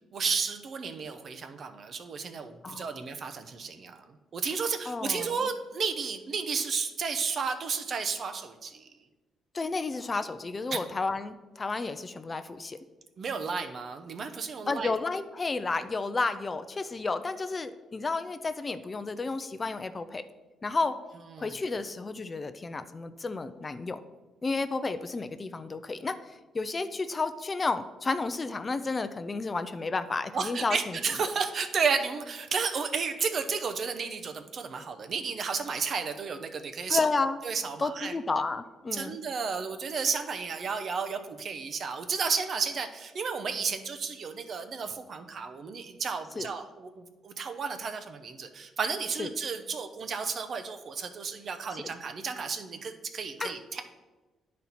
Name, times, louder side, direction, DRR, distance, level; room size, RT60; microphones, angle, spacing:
voice 1, 0.1-4.0 4.3-8.9 10.7-10.8 13.2-14.9 21.3-21.5 30.3-37.0 37.4-38.1 38.9-53.8, right 5 dB, 50° right, 8 dB, 0.7 m, -32 dB
voice 2, 2.6-3.0 4.9-5.5 9.5-12.8 14.7-20.2 20.6-21.0 21.4-24.0 24.4-31.0 36.9-37.4 37.8-39.2 46.4-46.5 49.2-49.3 51.7-51.9 53.4-53.5, left 3 dB, 30° left, 11 dB, 0.4 m, -32 dB
10.0 x 4.2 x 4.1 m, 1.2 s
cardioid pair, 90°, 0 cm